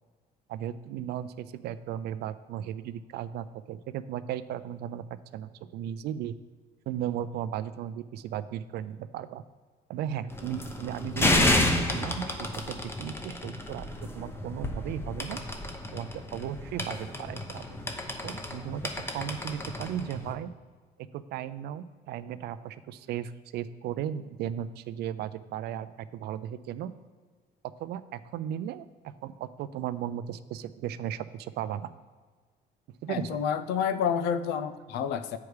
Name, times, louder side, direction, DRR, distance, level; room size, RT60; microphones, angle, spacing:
voice 1, 0.5-5.0 5.3-6.4 6.9-9.4 9.9-15.4 15.9-17.8 18.1-20.5 21.1-26.9 27.8-31.9 33.0-33.4, right 10 dB, 75° right, 14 dB, 0.4 m, -36 dB
sound 1, 10.3-20.3, left 1 dB, 15° left, 0.8 m, -31 dB
voice 2, 33.1-35.4, left 7 dB, 85° left, 12 dB, 0.5 m, -29 dB
8.2 x 4.7 x 4.8 m, 1.5 s
cardioid pair, 110°, 17 cm